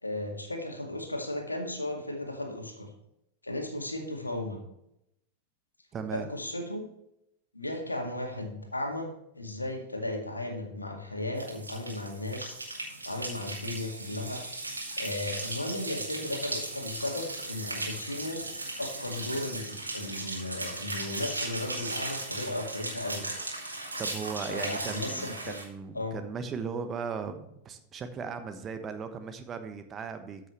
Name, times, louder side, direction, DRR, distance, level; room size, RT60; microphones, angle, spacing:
voice 1, 0.0-2.9 3.4-4.6 6.1-6.9 7.5-9.1 9.3-12.8 13.0-14.4 15.0-18.4 18.8-23.3 24.5-25.3 25.9-26.2, left 1 dB, 80° left, 2 dB, 2.0 m, -35 dB
voice 2, 5.9-6.3 24.0-30.4, right 6 dB, 25° right, 9 dB, 1.1 m, -37 dB
sound 1, 11.4-25.6, right 2 dB, 80° right, 2.4 m, -37 dB
13.5 x 6.2 x 3.1 m, 0.80 s
figure-of-eight pair, 90°, 0 cm